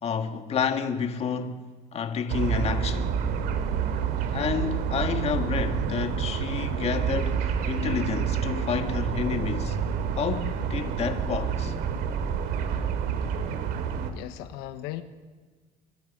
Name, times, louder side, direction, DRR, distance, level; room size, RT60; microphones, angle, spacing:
voice 1, 0.0-1.6 1.9-3.2 4.3-9.8 10.2-11.7, left 6 dB, 40° left, 1.7 m, -30 dB
sound 1, 2.3-14.1, right 7 dB, 70° right, 2.5 m, -28 dB
voice 2, 14.1-15.0, left 15 dB, 90° left, 1.2 m, -37 dB
25.0 x 23.5 x 5.4 m
cardioid pair, 125°, 16 cm